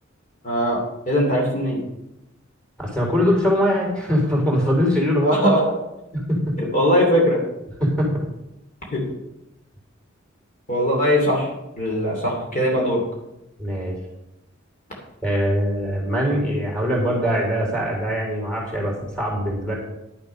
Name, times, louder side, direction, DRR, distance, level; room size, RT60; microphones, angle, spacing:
voice 1, 0.4-1.8 5.2-5.6 6.7-7.4 8.9-9.0 10.7-11.5 11.8-13.0, equal, 40° left, -2 dB, 2.9 m, -20 dB
voice 2, 2.8-5.3 6.3-6.5 7.8-8.2 13.6-13.9 15.2-19.7, equal, 5° left, -3 dB, 4.0 m, -22 dB
11.5 x 8.2 x 5.5 m, 0.90 s
head